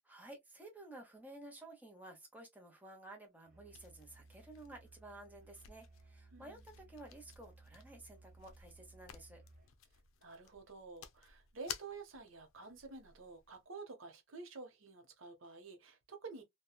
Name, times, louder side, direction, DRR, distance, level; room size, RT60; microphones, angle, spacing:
voice 1, 0.1-9.4, right 2 dB, 10° right, 0.8 m, -54 dB
Musical instrument, 3.4-9.8, right 3 dB, 50° right, 0.9 m, -61 dB
sound 1, 3.7-13.6, left 9 dB, 85° left, 0.4 m, -55 dB
voice 2, 10.2-16.4, right 4 dB, 80° right, 0.8 m, -50 dB
2.8 x 2.2 x 2.2 m
head